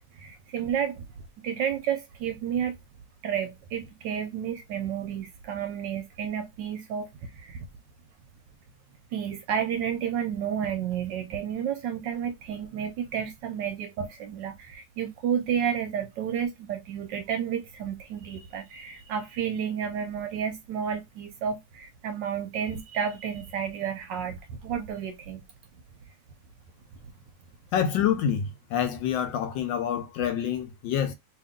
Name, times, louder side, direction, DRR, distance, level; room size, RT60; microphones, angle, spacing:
voice 1, 0.1-1.0 1.4-2.7 3.2-7.7 9.1-25.4, right 8 dB, 70° right, 1.2 m, -31 dB
voice 2, 27.7-31.1, left 9 dB, 75° left, 1.2 m, -27 dB
2.9 x 2.9 x 3.6 m
omnidirectional pair, 2.3 m